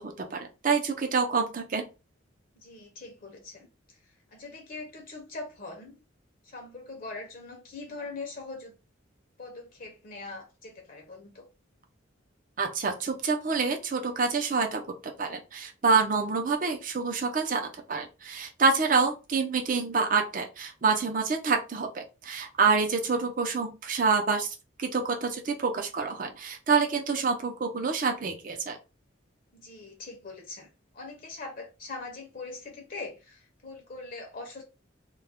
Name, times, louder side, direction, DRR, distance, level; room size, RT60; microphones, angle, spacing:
voice 1, 0.0-1.8 12.6-28.8, right 4 dB, 45° right, 0.5 m, -27 dB
voice 2, 2.6-6.0 6.4-8.7 9.4-11.5 29.5-34.6, left 3 dB, 45° left, 0.6 m, -42 dB
2.3 x 2.1 x 3.4 m
head